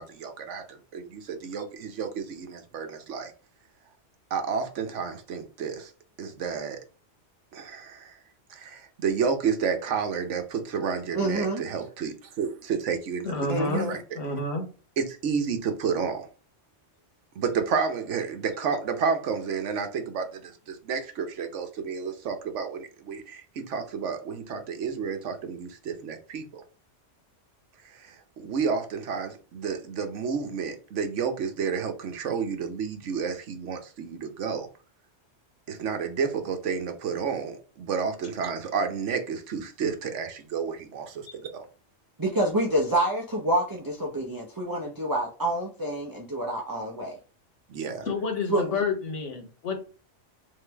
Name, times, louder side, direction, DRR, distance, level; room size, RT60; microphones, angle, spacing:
voice 1, 0.0-3.3 4.3-5.9 6.2-6.8 7.5-8.2 8.5-13.5 13.7-14.2 15.0-16.3 17.4-26.6 27.9-28.1 28.4-34.7 35.7-41.6 47.7-48.1, right 6 dB, 80° right, 1.1 m, -31 dB
voice 2, 11.1-11.6 13.5-14.0 42.2-47.1 48.5-48.8, right 1 dB, 20° right, 0.6 m, -27 dB
voice 3, 13.2-13.9 14.1-14.7 48.0-49.8, left 3 dB, 90° left, 1.4 m, -29 dB
3.7 x 3.2 x 3.4 m
omnidirectional pair, 1.2 m